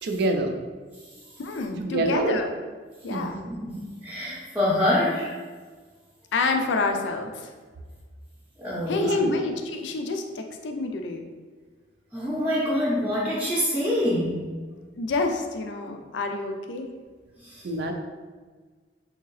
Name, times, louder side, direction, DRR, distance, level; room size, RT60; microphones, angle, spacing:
voice 1, 0.0-0.6 1.8-2.4 3.1-3.3 9.0-9.4 17.6-17.9, right 2 dB, 65° right, 4 dB, 0.4 m, -26 dB
voice 2, 1.4-2.5 3.0-3.4 6.3-7.5 8.9-11.3 15.0-16.9, left 3 dB, 75° left, 4 dB, 0.4 m, -28 dB
voice 3, 3.3-5.3 8.6-9.0 12.1-14.4 17.4-17.6, left 1 dB, 10° right, -8 dB, 0.6 m, -26 dB
3.5 x 2.8 x 3.1 m, 1.4 s
head